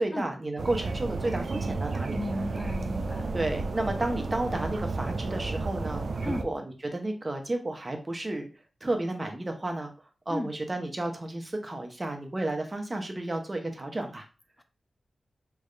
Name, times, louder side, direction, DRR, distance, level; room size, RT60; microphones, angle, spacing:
voice 1, 0.0-2.2 3.3-6.6 6.9-8.5 8.8-9.9 10.3-14.3, right 2 dB, 30° right, 4 dB, 0.8 m, -32 dB
sound 1, 0.6-6.4, right 3 dB, 75° right, 0.4 m, -32 dB
voice 2, 2.1-3.3 6.2-6.4 10.3-10.5 14.6-14.7, left 1 dB, 20° left, 8 dB, 0.3 m, -34 dB
3.5 x 2.4 x 3.2 m, 0.34 s
cardioid pair, 65°, 0 cm